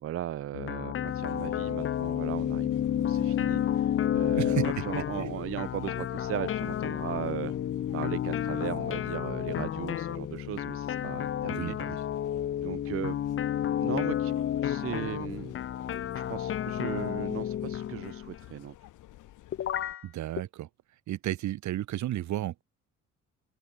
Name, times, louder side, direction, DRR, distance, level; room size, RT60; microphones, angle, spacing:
voice 1, 0.0-7.5 7.9-11.8 12.6-13.2 13.8-14.4 14.6-15.5 16.1-18.7, right 12 dB, 50° right, 0.5 m, -37 dB
sound 1, 0.5-18.4 19.5-20.0 20.4-20.5, left 10 dB, 45° left, 0.6 m, -31 dB
sound 2, 1.0-19.9, left 15 dB, 85° left, 6.9 m, -52 dB
voice 2, 11.5-12.0 20.0-20.7 21.1-22.6, right 13 dB, 70° right, 1.0 m, -32 dB
open air
cardioid pair, 90°, 30 cm